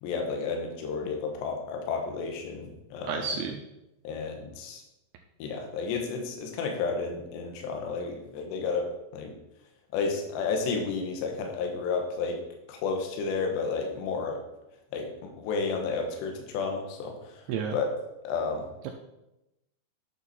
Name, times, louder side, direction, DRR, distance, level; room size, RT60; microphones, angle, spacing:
voice 1, 0.0-3.4 4.0-4.8 5.4-8.9 9.1-9.3 9.9-12.4 12.7-14.4 14.9-17.4 17.7-17.9 18.2-18.7, left 4 dB, 70° left, 2 dB, 3.2 m, -31 dB
voice 2, 3.1-3.6 17.5-17.8 18.8-18.9, right 6 dB, 80° right, 3 dB, 2.7 m, -31 dB
11.0 x 7.0 x 4.3 m, 0.91 s
omnidirectional pair, 5.8 m